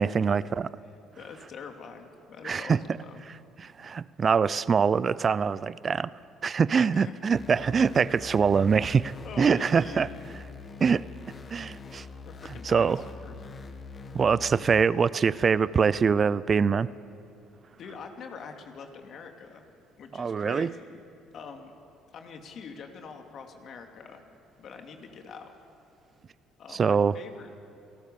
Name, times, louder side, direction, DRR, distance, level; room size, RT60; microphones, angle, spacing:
voice 1, 0.0-0.7 2.4-2.8 3.6-6.1 6.4-10.1 10.8-11.0 11.5-12.1 12.6-13.0 14.1-16.9 20.2-20.7 26.7-27.1, right 6 dB, 40° right, 19 dB, 0.6 m, -24 dB
voice 2, 0.8-3.2 6.9-7.1 9.2-10.3 12.3-13.4 17.8-19.7 20.0-21.0 21.3-21.7 22.1-24.2 24.6-25.5 26.6-27.5, left 5 dB, 55° left, 4 dB, 2.7 m, -44 dB
sound 1, 7.3-14.8, left 4 dB, 35° left, 1.8 m, -44 dB
28.0 x 18.5 x 7.0 m, 2.7 s
hypercardioid pair, 60°, 0 cm